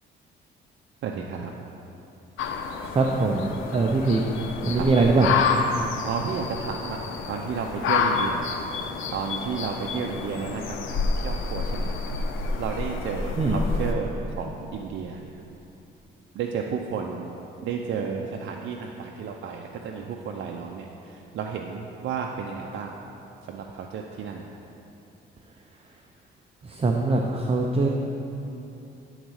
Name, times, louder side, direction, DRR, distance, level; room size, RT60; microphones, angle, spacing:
voice 1, 1.0-1.5 4.7-4.9 6.0-7.0 7.3-8.4 9.1-10.6 10.9-11.0 11.2-11.9 12.6-15.3 16.4-17.3 17.6-20.9 21.3-22.9 23.5-24.5, right 6 dB, 70° right, 1 dB, 0.6 m, -32 dB
sound 1, 2.4-13.9, left 4 dB, 85° left, 0.7 m, -29 dB
voice 2, 2.9-4.2 4.6-5.3 13.4-13.6 26.7-27.9, right 3 dB, 30° right, 1 dB, 0.6 m, -22 dB
10.0 x 4.0 x 6.4 m, 2.8 s
cardioid pair, 90°, 20 cm